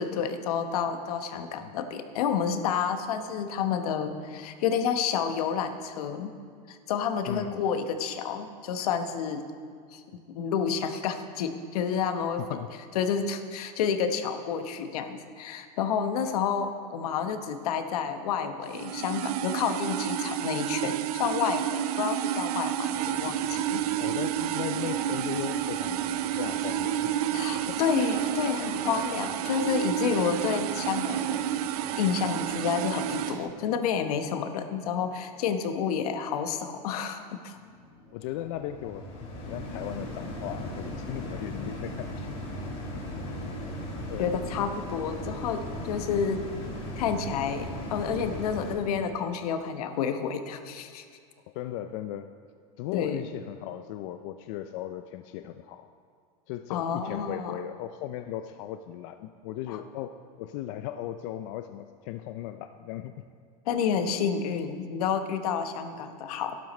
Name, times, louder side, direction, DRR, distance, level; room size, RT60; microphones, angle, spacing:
voice 1, 0.0-6.3 6.7-9.4 9.9-10.0 10.3-12.6 12.9-21.7 21.9-23.8 27.3-31.4 32.0-37.6 44.2-46.4 47.0-51.1 52.9-53.2 56.7-57.5 59.7-59.8 63.7-66.6, left 7 dB, 75° left, 7 dB, 1.1 m, -29 dB
voice 2, 1.3-1.7 7.3-7.6 12.4-12.7 24.0-26.1 26.4-27.2 27.5-27.8 28.5-28.6 38.1-39.1 39.4-42.4 44.1-44.3 51.5-52.3 52.8-55.9 56.5-63.3, left 12 dB, 50° left, 8 dB, 0.4 m, -37 dB
sound 1, 18.7-33.4, right 11 dB, 75° right, 0.5 m, -30 dB
sound 2, 22.9-33.5, right 6 dB, 45° right, 1.0 m, -44 dB
sound 3, 37.5-48.8, left 1 dB, 30° left, 2.3 m, -37 dB
12.0 x 11.0 x 4.2 m, 2.1 s
supercardioid pair, 150°, 20 cm